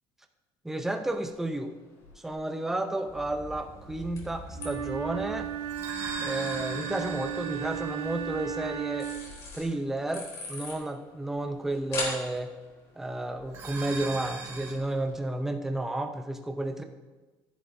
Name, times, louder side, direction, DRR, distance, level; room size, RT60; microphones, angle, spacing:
voice 1, 0.6-1.8 2.2-5.5 6.2-9.1 9.5-12.5 13.0-16.8, right 2 dB, 5° right, 6 dB, 0.5 m, -32 dB
sound 1, 1.1-15.2, left 3 dB, 40° left, 3.4 m, -44 dB
sound 2, 3.1-9.7 13.4-14.7, right 3 dB, 30° right, 1.9 m, -41 dB
Wind instrument woodwind instrument, 4.5-9.4, right 10 dB, 70° right, 0.9 m, -35 dB
15.0 x 10.5 x 2.6 m, 1.2 s
cardioid pair, 170°, 9 cm